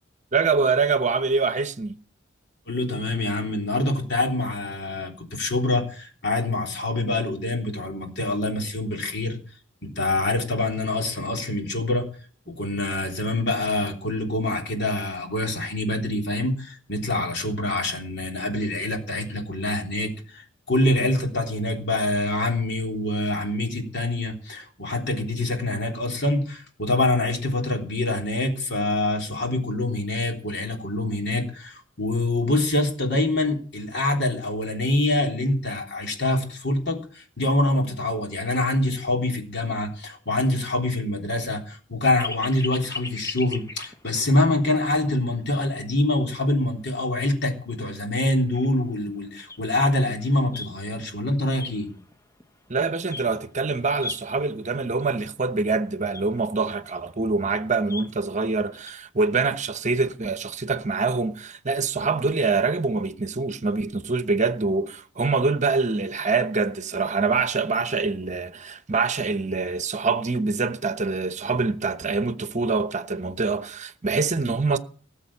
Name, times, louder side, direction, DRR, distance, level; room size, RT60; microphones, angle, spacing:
voice 1, 0.3-1.9 52.7-74.8, right 4 dB, 40° right, 1.0 m, -25 dB
voice 2, 2.7-9.4 9.8-12.1 12.5-51.9, left 2 dB, 60° left, 3.5 m, -25 dB
sound 1, 42.2-44.4 44.8-44.9 45.3-45.4 46.7-46.8 47.3-47.4 47.8-47.9 48.2-51.1 51.5-52.7 53.0-53.5 53.8-54.7 55.2-55.3 55.5-55.6 55.9-58.9, left 3 dB, 15° left, 0.9 m, -38 dB
18.5 x 7.4 x 7.4 m
head